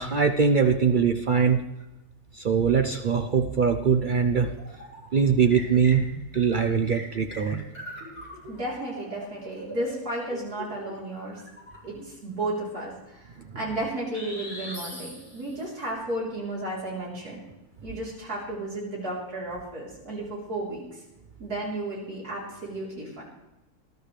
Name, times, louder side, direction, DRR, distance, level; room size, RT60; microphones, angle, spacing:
voice 1, 0.0-1.6 2.3-4.5 5.1-6.0 6.3-7.6, right 6 dB, 85° right, 5 dB, 0.4 m, -22 dB
sound 1, 4.3-5.1 5.5-12.1 14.1-15.7, right 1 dB, 5° right, 5.2 m, -41 dB
voice 2, 8.5-11.4 11.8-13.3 13.5-17.4 17.8-21.0 21.4-23.2, right 1 dB, 65° right, -4 dB, 4.3 m, -33 dB
20.0 x 12.0 x 3.3 m, 0.97 s
omnidirectional pair, 1.7 m